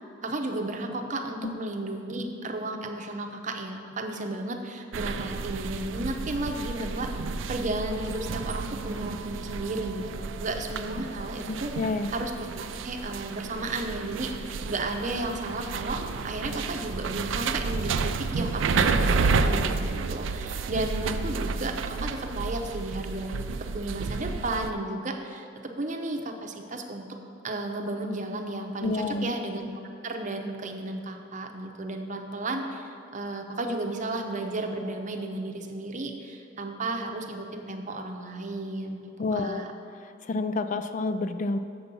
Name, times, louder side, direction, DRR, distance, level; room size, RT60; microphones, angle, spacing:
voice 1, 0.2-7.1 7.5-11.7 12.1-27.1 27.4-29.7 30.0-39.0 39.3-39.7, right 2 dB, 40° right, 4 dB, 0.7 m, -33 dB
sound 1, 4.9-24.7, right 4 dB, 90° right, 0.4 m, -31 dB
voice 2, 11.5-12.1 28.8-29.3 39.2-39.6 40.2-41.6, left 3 dB, 40° left, 10 dB, 0.3 m, -29 dB
7.0 x 6.9 x 5.3 m, 2.6 s
head